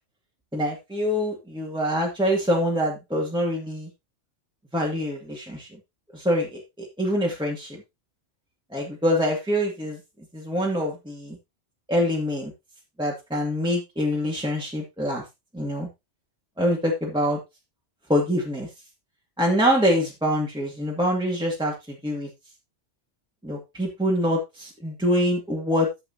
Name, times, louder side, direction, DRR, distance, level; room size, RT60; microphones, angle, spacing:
voice 1, 0.5-3.9 4.7-5.7 6.1-7.8 8.7-10.0 10.3-11.4 11.9-12.5 13.0-15.2 15.5-15.9 16.6-17.4 18.1-18.7 19.4-22.3 23.4-25.9, equal, 5° right, -3 dB, 2.1 m, -25 dB
12.5 x 7.4 x 2.8 m, 0.22 s
omnidirectional pair, 1.2 m